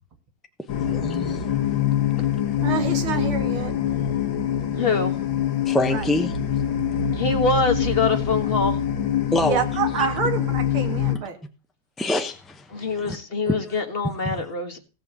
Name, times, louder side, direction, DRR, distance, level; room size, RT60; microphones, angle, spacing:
sound 1, 0.7-11.2, left 9 dB, 70° left, 1.9 m, -24 dB
voice 1, 0.8-1.5 2.2-2.3 4.2-4.4 5.6-6.4 6.6-7.1 9.3-9.6 10.0-10.1 12.0-13.2 13.5-13.8 14.2-14.4, left 1 dB, ahead, 0.3 m, -27 dB
voice 2, 2.6-3.7 5.9-6.1 9.5-11.4, right 6 dB, 85° right, 2.7 m, -27 dB
voice 3, 4.7-5.1 7.1-8.8 12.7-14.8, left 4 dB, 30° left, 1.6 m, -24 dB
17.0 x 5.6 x 7.9 m
omnidirectional pair, 2.3 m